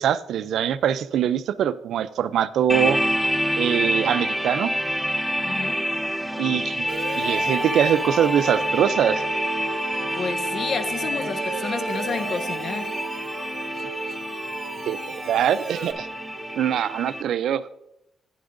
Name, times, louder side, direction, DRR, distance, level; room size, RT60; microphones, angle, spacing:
voice 1, 0.0-3.0 3.6-4.7 6.4-6.9 7.2-9.2 14.9-15.0 15.3-16.1 16.6-17.6, right 9 dB, 75° right, 0.4 m, -23 dB
sound 1, 2.7-17.2, equal, ahead, 0.4 m, -28 dB
voice 2, 5.4-5.8 10.1-12.9, left 5 dB, 50° left, 0.7 m, -30 dB
Wind instrument woodwind instrument, 6.8-16.8, right 1 dB, 25° left, 1.4 m, -33 dB
Siren, 6.9-15.9, right 6 dB, 55° right, 0.8 m, -39 dB
11.5 x 9.4 x 2.6 m
cardioid pair, 145°, 0 cm